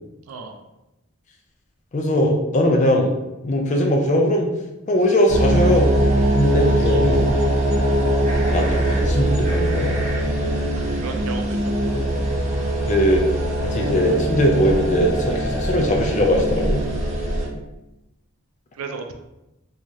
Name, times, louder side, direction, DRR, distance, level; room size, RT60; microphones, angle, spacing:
voice 1, 0.3-0.6 10.8-11.6 11.8-12.0 18.7-19.1, right 4 dB, 85° right, 5 dB, 0.4 m, -34 dB
voice 2, 1.9-3.1 3.4-4.5 4.9-5.9 6.3-7.2 8.5-9.9 12.9-13.3 13.7-16.8, equal, 35° left, 1 dB, 0.4 m, -20 dB
sound 1, 5.3-17.5, right 1 dB, 30° right, 0.5 m, -21 dB
3.1 x 2.4 x 2.6 m, 0.98 s
head